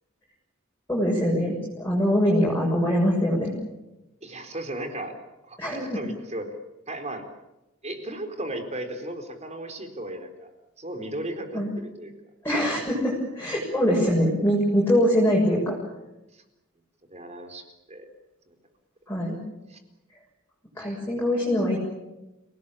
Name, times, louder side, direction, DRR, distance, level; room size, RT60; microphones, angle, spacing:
voice 1, 0.9-3.5 5.6-6.0 11.5-11.7 12.4-15.8 19.1-19.4 20.8-21.8, equal, 10° left, -4 dB, 6.8 m, -23 dB
voice 2, 4.2-5.2 5.4-6.5 6.9-7.3 7.8-10.5 10.8-12.1 16.3-16.4 17.1-18.1 18.5-18.6 19.7-19.8, right 1 dB, 35° right, 6 dB, 4.2 m, -35 dB
29.0 x 18.5 x 8.7 m, 0.96 s
head